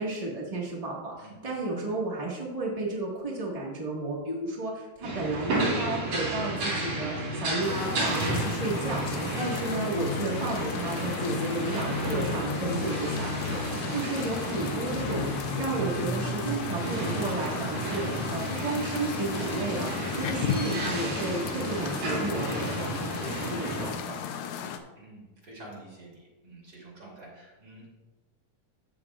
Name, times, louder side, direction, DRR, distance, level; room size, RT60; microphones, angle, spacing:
voice 1, 0.0-24.1, right 2 dB, 60° right, -3 dB, 0.3 m, -33 dB
sound 1, 5.0-23.9, right 1 dB, 75° right, 4.9 m, -32 dB
sound 2, 7.6-24.8, left 8 dB, 75° left, 1.8 m, -35 dB
voice 2, 25.0-27.9, right 2 dB, 30° right, -3 dB, 3.0 m, -48 dB
14.0 x 7.7 x 2.4 m, 1.1 s
omnidirectional pair, 3.8 m